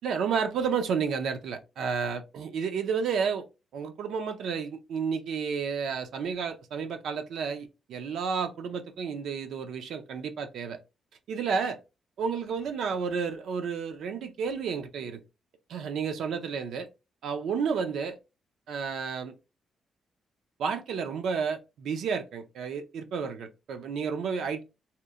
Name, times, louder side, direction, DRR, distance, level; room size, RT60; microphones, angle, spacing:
voice 1, 0.0-3.4 3.7-10.8 11.3-11.8 12.2-15.2 15.7-16.9 17.2-18.2 18.7-19.3 20.6-24.6, right 6 dB, 80° right, 0.3 m, -31 dB
2.8 x 2.0 x 2.3 m
cardioid pair, 135°, 0 cm